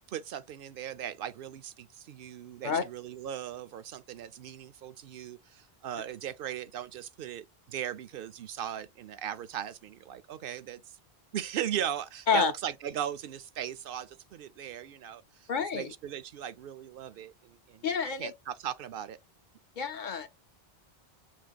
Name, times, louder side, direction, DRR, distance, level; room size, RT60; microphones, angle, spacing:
voice 1, 0.0-11.0 11.3-17.9 18.2-19.2, right 10 dB, 65° right, 0.7 m, -38 dB
voice 2, 15.5-15.9 17.8-18.3 19.8-20.3, left 6 dB, 60° left, 0.6 m, -28 dB
5.8 x 2.8 x 2.4 m
omnidirectional pair, 1.0 m